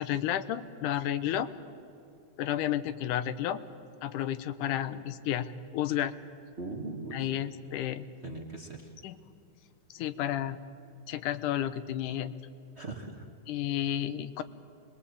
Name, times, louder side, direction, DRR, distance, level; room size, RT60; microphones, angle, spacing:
voice 1, 0.0-1.5 2.4-3.6 4.0-6.1 7.1-8.1 9.0-9.2 9.9-10.6 11.1-12.3 13.5-14.4, left 11 dB, 85° left, 13 dB, 2.3 m, -31 dB
voice 2, 6.6-7.3 8.2-8.9 12.7-13.3, right 3 dB, 35° right, 2 dB, 1.0 m, -40 dB
25.5 x 20.5 x 8.4 m, 2.6 s
omnidirectional pair, 3.6 m